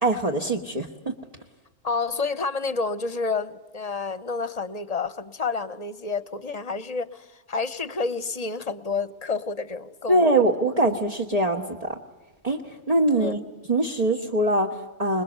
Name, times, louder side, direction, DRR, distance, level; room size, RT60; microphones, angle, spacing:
voice 1, 0.0-1.1 10.1-12.0 12.4-13.4 13.7-15.2, right 1 dB, 35° right, 0 dB, 1.5 m, -23 dB
voice 2, 1.8-10.4 13.2-13.4, left 4 dB, 35° left, 14 dB, 1.0 m, -29 dB
27.5 x 21.0 x 8.2 m, 1.1 s
omnidirectional pair, 1.2 m